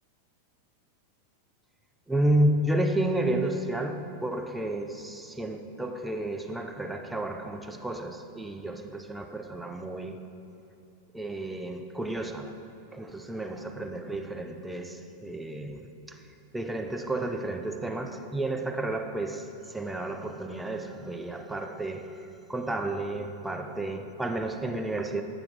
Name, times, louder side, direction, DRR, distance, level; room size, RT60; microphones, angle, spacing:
voice 1, 2.1-10.2 11.1-12.6 12.9-16.2 16.5-22.2 22.5-25.2, right 1 dB, 5° right, 0.4 m, -31 dB
7.8 x 5.8 x 3.5 m
figure-of-eight pair, 90°, 0 cm